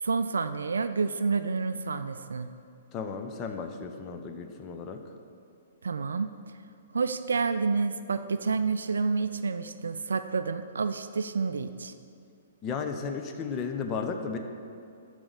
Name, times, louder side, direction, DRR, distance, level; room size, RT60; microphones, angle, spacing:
voice 1, 0.0-2.5 5.8-6.3 6.9-11.9, right 4 dB, 70° right, 11 dB, 0.3 m, -29 dB
voice 2, 2.9-5.0 12.6-14.4, left 5 dB, 25° left, 5 dB, 0.6 m, -34 dB
7.0 x 4.9 x 6.7 m, 2.5 s
figure-of-eight pair, 115°, 0 cm